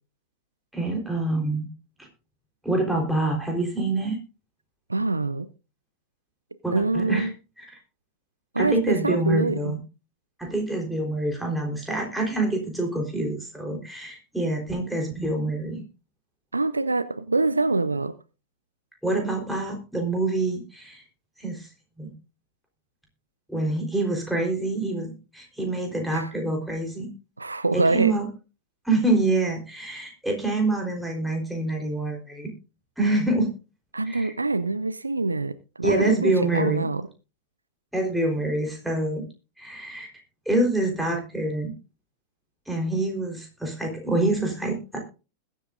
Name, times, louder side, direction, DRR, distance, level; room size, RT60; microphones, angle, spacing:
voice 1, 0.7-1.7 2.6-4.2 6.6-7.3 7.6-7.7 8.6-9.8 10.4-15.8 19.0-21.0 21.4-21.7 22.0-22.1 23.5-27.1 27.7-28.3 28.8-32.5 33.0-33.5 34.1-34.3 35.8-36.9 37.9-39.2 39.6-40.1 40.5-41.7 42.7-45.0, right 2 dB, ahead, 3.8 m, -26 dB
voice 2, 4.9-5.5 6.7-7.3 8.5-9.7 16.5-18.1 26.1-26.3 27.4-28.1 33.9-37.1, right 3 dB, 80° right, 0.6 m, -25 dB
21.0 x 8.5 x 2.5 m
figure-of-eight pair, 90°, 0 cm